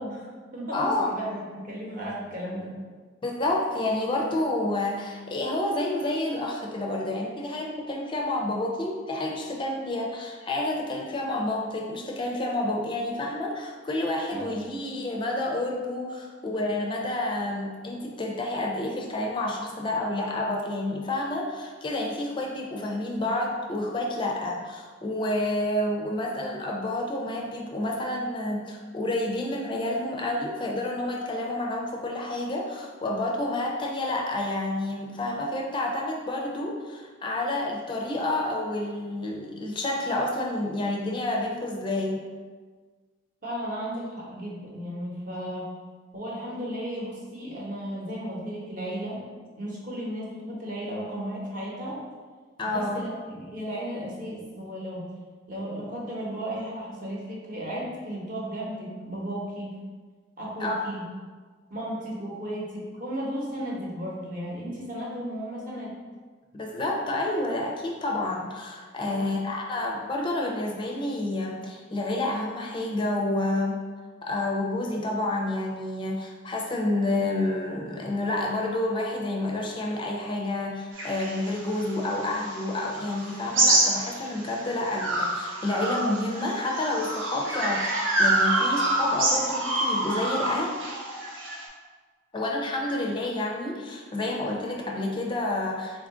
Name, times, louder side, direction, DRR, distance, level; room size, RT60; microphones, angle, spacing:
voice 1, 0.0-2.8 14.3-14.6 43.4-45.7 46.1-49.2 49.6-52.0 52.6-55.1 55.5-59.7 60.4-61.0 61.7-66.0 69.0-69.3, equal, 45° right, -5 dB, 0.9 m, -34 dB
voice 2, 0.7-1.1 3.2-42.2 52.6-53.0 60.6-60.8 66.5-73.8 74.2-87.8 88.2-90.8 92.3-96.1, left 2 dB, 25° left, 0 dB, 0.4 m, -29 dB
sound 1, 81.0-84.5 84.9-91.6, right 2 dB, 85° right, 0.7 m, -26 dB
3.7 x 2.5 x 3.6 m, 1.5 s
head